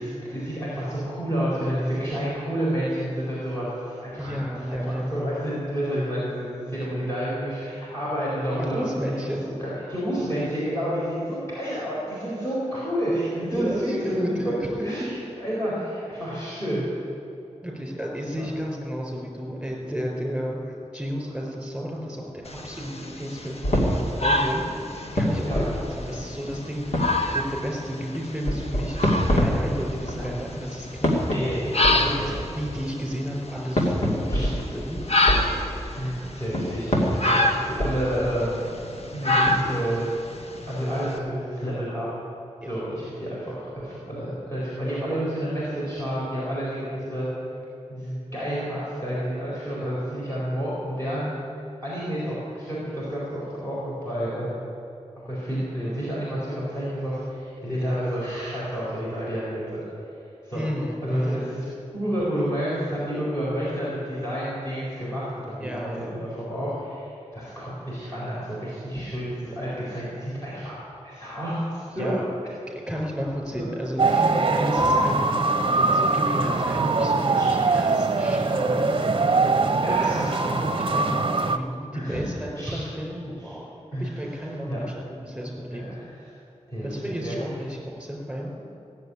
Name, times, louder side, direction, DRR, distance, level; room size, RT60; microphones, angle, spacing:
voice 1, 0.0-8.8 9.6-15.0 15.4-16.8 18.3-18.5 25.4-25.6 31.2-32.4 34.3-34.5 36.0-38.7 39.1-40.1 40.7-42.2 42.6-47.3 47.9-51.3 51.8-54.7 55.3-59.8 60.4-60.6 61.0-61.7 61.9-70.8 71.0-72.1 73.5-73.7 77.4-77.6 79.8-80.3 81.9-82.2 82.6-82.8 83.4-83.5 83.9-84.1 84.6-84.8 85.7-86.3 86.7-87.4, equal, 25° left, -8 dB, 4.4 m, -30 dB
voice 2, 4.2-5.2 8.6-9.5 13.5-15.1 17.6-24.8 25.1-31.1 31.9-35.0 42.6-42.7 49.7-50.0 60.5-61.5 65.6-66.3 72.0-72.2 72.7-85.8 86.8-88.5, equal, 5° right, -1 dB, 4.5 m, -32 dB
sound 1, 22.5-41.2, left 1 dB, 55° left, 1.3 m, -28 dB
sound 2, 23.6-26.6 26.8-27.6 28.5-30.7 31.0-32.9 33.8-38.8 39.4-39.5, equal, 75° left, 2.5 m, -27 dB
sound 3, 74.0-81.6, right 3 dB, 45° right, 0.8 m, -22 dB
16.5 x 7.5 x 9.8 m, 2.8 s
wide cardioid pair, 95°, 12 cm